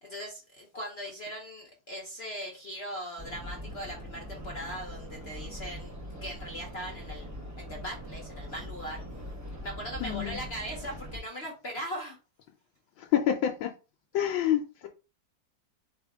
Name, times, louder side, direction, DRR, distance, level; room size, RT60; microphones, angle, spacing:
voice 1, 0.0-7.3 7.6-9.0 9.6-12.2, equal, 45° left, 0.8 m, -39 dB
sound 1, 3.2-11.2, equal, 20° right, 0.4 m, -42 dB
voice 2, 10.0-10.4 13.1-13.7 14.1-14.9, left 10 dB, 85° left, 1.4 m, -27 dB
4.2 x 3.4 x 3.5 m
omnidirectional pair, 2.1 m